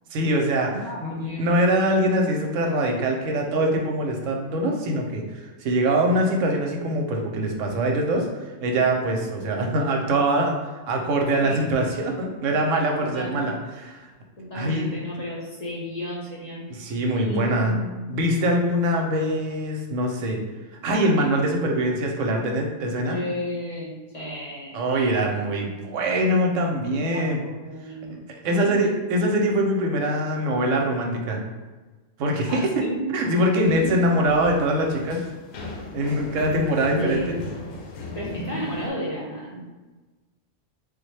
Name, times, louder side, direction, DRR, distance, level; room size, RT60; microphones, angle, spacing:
voice 1, 0.1-10.5 10.9-14.0 14.5-14.9 16.8-17.8 18.1-20.4 20.8-23.2 24.7-27.4 28.4-31.4 32.2-35.2 35.9-37.4, right 1 dB, 90° right, 1 dB, 1.0 m, -23 dB
voice 2, 0.7-1.5 9.4-9.5 11.3-11.6 12.9-13.4 14.4-18.0 18.8-18.9 23.0-25.2 27.1-28.8 32.5-33.0 33.8-33.9 36.9-37.5 38.1-39.6, left 1 dB, 40° left, -6 dB, 0.7 m, -33 dB
sound 1, 33.6-38.9, left 2 dB, 85° left, 1.0 m, -37 dB
3.5 x 2.1 x 3.2 m, 1.2 s
omnidirectional pair, 1.3 m